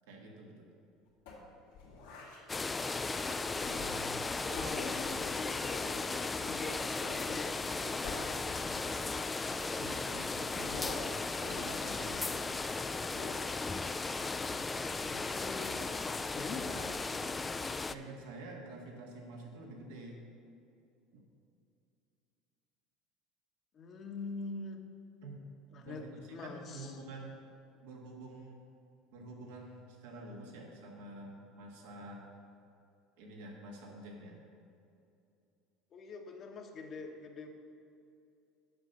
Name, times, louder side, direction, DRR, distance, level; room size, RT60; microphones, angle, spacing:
voice 1, 0.1-0.7 9.8-10.8 11.4-12.5 14.4-14.6 16.5-16.9 17.8-20.2 21.1-21.2 25.2-25.4 25.7-27.4 27.8-28.6 29.1-32.2 33.2-34.4, right 2 dB, 80° right, 0 dB, 1.6 m, -48 dB
sound 1, 1.3-2.5 3.6-4.2 4.6-6.0 7.0-7.3 7.6-7.7 8.0-9.5 10.7-11.2 11.6-12.7 13.1-13.5, left 3 dB, 85° left, 2.1 m, -47 dB
sound 2, 2.5-18.0, left 3 dB, 20° left, 0.3 m, -36 dB
voice 2, 3.1-4.0 4.4-8.4 14.0-14.6 15.0-15.8 16.3-16.8 23.7-24.8 25.7-26.9 35.9-37.5, left 3 dB, 45° left, 4 dB, 1.1 m, -45 dB
7.8 x 5.3 x 7.1 m, 2.6 s
supercardioid pair, 90°, 0 cm